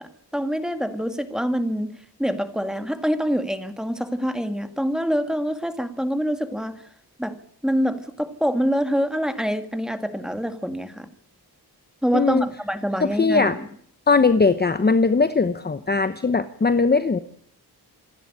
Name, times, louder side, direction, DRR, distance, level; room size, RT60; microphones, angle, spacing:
voice 1, 0.0-1.9 2.2-6.7 7.2-7.3 7.6-11.1 12.0-13.6, equal, ahead, 8 dB, 2.0 m, -25 dB
voice 2, 12.1-12.4 13.0-13.6 14.1-17.2, left 4 dB, 25° left, 11 dB, 0.8 m, -19 dB
26.5 x 11.0 x 10.0 m, 0.66 s
wide cardioid pair, 165°, 39 cm